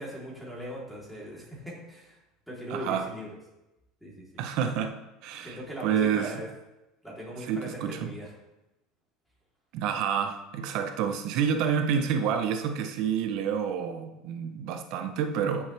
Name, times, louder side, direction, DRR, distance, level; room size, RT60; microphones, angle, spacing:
voice 1, 0.0-2.2 2.5-3.3 4.0-4.4 5.4-6.5 7.0-8.3, equal, 5° left, 3.6 m, -40 dB
voice 2, 2.7-3.1 4.4-6.4 7.4-8.1 9.7-15.7, right 7 dB, 60° right, 0.9 m, -29 dB
13.5 x 7.2 x 3.5 m
supercardioid pair, 140°, 0 cm